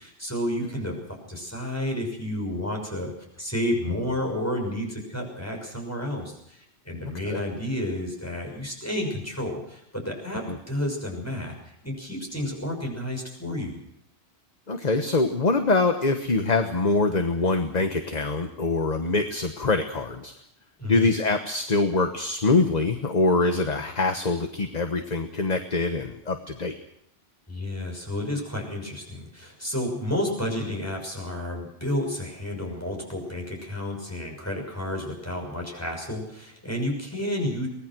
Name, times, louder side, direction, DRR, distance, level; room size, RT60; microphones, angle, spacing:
voice 1, 0.0-13.8 20.8-21.1 27.5-37.7, left 1 dB, 15° left, 1 dB, 6.2 m, -31 dB
voice 2, 14.7-20.3 20.9-26.8, left 3 dB, 40° left, 7 dB, 1.3 m, -24 dB
24.0 x 19.0 x 6.2 m, 0.76 s
omnidirectional pair, 1.1 m